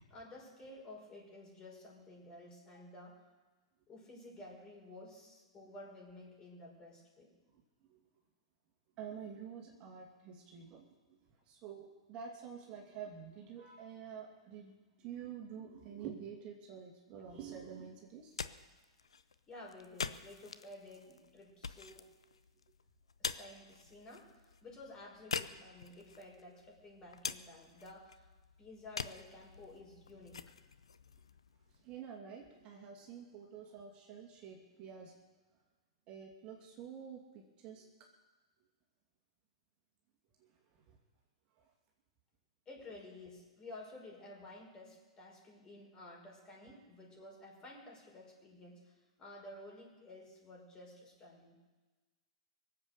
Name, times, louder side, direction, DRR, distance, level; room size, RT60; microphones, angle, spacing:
voice 1, 0.1-3.2 3.9-7.3 17.1-17.2 19.5-22.1 23.2-28.3 28.6-30.5 42.7-51.6, left 2 dB, 25° left, -1 dB, 5.5 m, -53 dB
voice 2, 9.0-11.2 11.5-18.3 31.8-35.1 36.1-37.9 40.4-40.5, right 7 dB, 35° right, -1 dB, 2.7 m, -48 dB
sound 1, 18.1-32.0, left 5 dB, 80° left, 0.7 m, -46 dB
23.5 x 8.0 x 6.9 m, 1.3 s
figure-of-eight pair, 100°, 3 cm